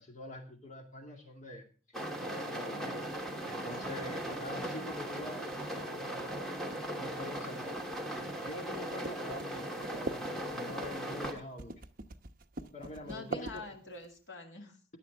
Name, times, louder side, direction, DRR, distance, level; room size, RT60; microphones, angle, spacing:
voice 1, 0.0-1.7 2.2-3.1 3.5-6.4 7.0-7.8 8.4-11.9 12.7-13.6, left 1 dB, 40° left, 2 dB, 2.2 m, -45 dB
sound 1, 1.9-11.3, right 1 dB, ahead, 2.6 m, -38 dB
sound 2, 3.1-14.1, right 2 dB, 45° right, 1.0 m, -45 dB
voice 2, 13.0-14.8, left 2 dB, 75° left, 1 dB, 2.5 m, -46 dB
17.0 x 11.0 x 3.5 m, 0.37 s
head